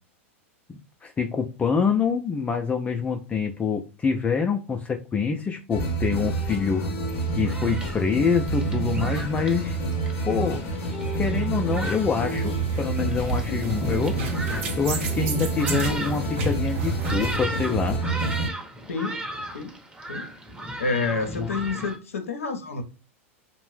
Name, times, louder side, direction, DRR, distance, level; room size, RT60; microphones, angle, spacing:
voice 1, 1.0-6.8 7.4-9.8 10.3-10.6 11.2-14.2 14.8-18.0 21.4-21.5, left 5 dB, 20° left, 0.4 m, -26 dB
sound 1, 5.7-18.5, right 3 dB, 35° left, 0.8 m, -28 dB
Thunderstorm, 7.1-22.0, right 1 dB, 15° right, 0.8 m, -37 dB
sound 2, 12.3-17.4, right 2 dB, 65° right, 0.8 m, -33 dB
voice 2, 18.9-19.2 19.5-19.8 20.1-20.3 20.8-22.8, left 4 dB, 85° left, 0.6 m, -28 dB
2.5 x 2.0 x 3.2 m
hypercardioid pair, 100°, 7 cm